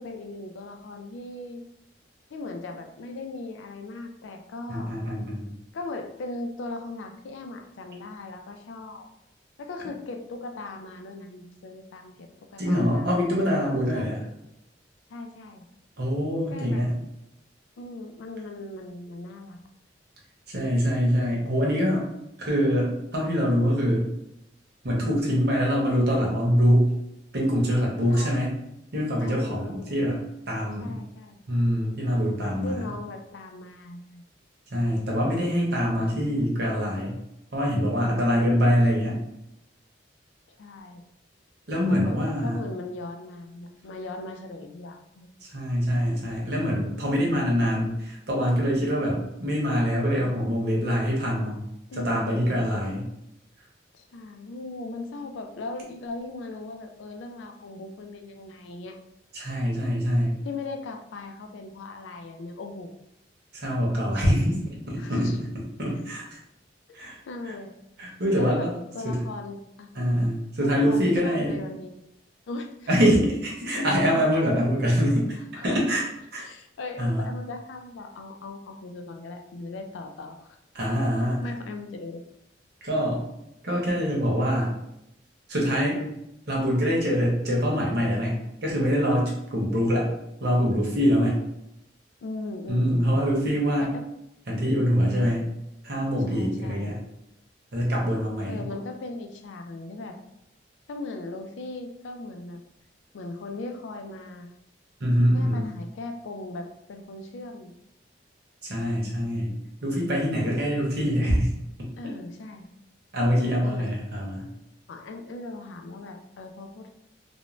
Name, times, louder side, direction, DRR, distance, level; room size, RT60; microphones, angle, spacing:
voice 1, 0.0-1.6 2.3-4.9 5.7-9.1 9.6-13.4 13.9-14.1 15.1-15.6 16.5-16.9 17.8-19.6 28.1-28.4 29.2-30.0 30.8-31.4 32.4-34.2 38.0-38.5 40.6-41.0 41.9-45.4 51.9-52.7 53.9-59.0 60.4-62.9 63.7-63.8 65.0-65.4 65.9-66.0 66.9-67.0 67.3-67.7 68.3-69.9 70.6-72.0 72.5-72.9 75.5-75.8 76.4-80.6 80.9-81.0 81.4-82.2 92.2-93.3 93.8-94.0 95.2-95.5 96.3-96.9 98.5-100.2 100.9-102.6 103.1-104.5 105.3-107.7 111.9-112.7 113.6-113.9 114.9-116.9, left 2 dB, 90° left, 5 dB, 0.4 m, -38 dB
voice 2, 4.7-5.5 12.6-14.2 16.0-17.0 20.5-22.0 22.4-24.1 24.8-26.9 27.3-28.5 28.9-30.2 30.5-31.0 31.5-32.9 34.7-37.2 37.5-39.2 41.7-42.6 45.5-51.7 52.0-53.1 59.3-60.3 63.5-64.6 64.9-65.5 65.8-66.2 66.9-67.2 68.0-68.7 69.0-69.2 69.9-71.6 72.9-75.4 75.6-76.0 76.3-76.5 77.0-77.3 80.7-81.5 82.8-83.2 83.6-84.7 85.5-86.0 86.5-90.1 90.4-91.4 92.7-93.9 94.5-95.5 95.8-97.0 97.7-98.6 105.0-105.7 108.6-109.5 109.8-111.5 111.8-111.9 113.1-114.5, equal, 60° right, -2 dB, 0.8 m, -24 dB
2.5 x 2.1 x 3.1 m, 0.84 s
head